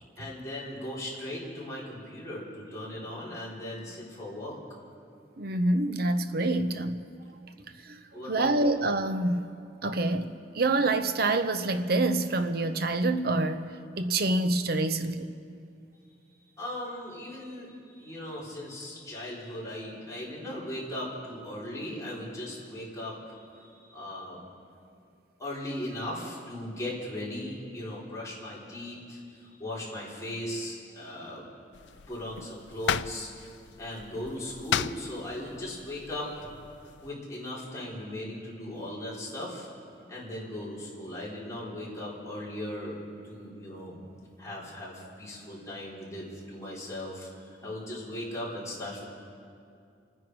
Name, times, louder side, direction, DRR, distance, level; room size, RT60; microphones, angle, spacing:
voice 1, 0.2-4.6 8.1-8.7 16.6-24.4 25.4-31.4 32.1-33.3 33.8-36.5 37.0-39.7 40.1-43.0 43.2-44.0 44.4-49.0, left 1 dB, 20° left, 4.0 m, -38 dB
voice 2, 5.4-7.0 7.9-8.0 8.3-9.5 9.8-13.7 14.0-15.3, right 2 dB, 60° right, 0.8 m, -26 dB
sound 1, 31.7-37.1, left 8 dB, 85° left, 0.4 m, -36 dB
28.5 x 9.9 x 4.8 m
head